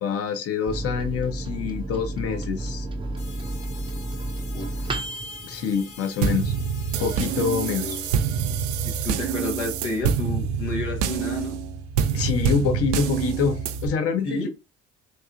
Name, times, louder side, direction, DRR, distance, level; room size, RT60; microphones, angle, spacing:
voice 1, 0.0-2.9 5.4-6.5 7.0-8.0 12.1-14.5, left 6 dB, 40° left, 0.7 m, -26 dB
Microwave oven, 0.7-6.7 7.1-7.2 7.5-8.1, right 2 dB, 15° right, 0.6 m, -32 dB
sound 1, 3.2-8.2, left 6 dB, 55° left, 1.0 m, -45 dB
sound 2, 6.2-13.9, right 7 dB, 70° right, 0.5 m, -26 dB
voice 2, 8.8-11.6 14.2-14.5, left 3 dB, 80° left, 1.0 m, -31 dB
4.0 x 2.7 x 2.4 m
figure-of-eight pair, 50°, 36 cm